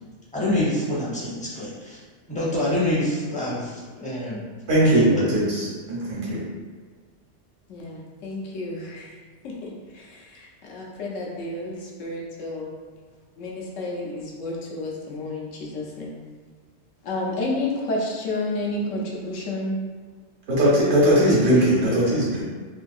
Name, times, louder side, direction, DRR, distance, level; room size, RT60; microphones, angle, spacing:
voice 1, 0.3-2.0 2.3-4.4 4.8-5.3 6.2-6.3, left 1 dB, 10° left, -7 dB, 0.5 m, -26 dB
voice 2, 4.7-6.4 20.5-22.4, right 1 dB, 85° right, -6 dB, 1.3 m, -20 dB
voice 3, 7.7-9.1 9.4-12.7 13.4-16.2 17.0-19.8 21.1-21.6, left 2 dB, 85° left, -3 dB, 1.1 m, -31 dB
3.4 x 2.7 x 2.3 m, 1.5 s
omnidirectional pair, 1.3 m